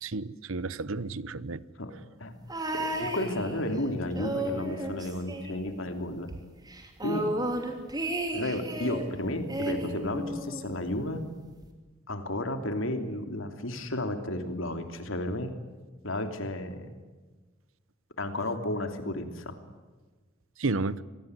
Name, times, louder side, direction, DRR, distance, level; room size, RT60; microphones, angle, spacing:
voice 1, 0.0-1.6 20.6-21.0, right 3 dB, 70° right, 0.9 m, -32 dB
sound 1, 2.5-3.8 4.1-6.0 6.3-6.4 6.7-9.1 9.5-10.7 11.6-11.7, right 1 dB, 20° right, 3.1 m, -33 dB
voice 2, 2.7-6.3 7.0-7.3 8.3-11.2 12.1-15.5 16.0-16.9 18.2-19.5, left 1 dB, 65° left, 3.1 m, -32 dB
26.5 x 19.0 x 9.8 m
head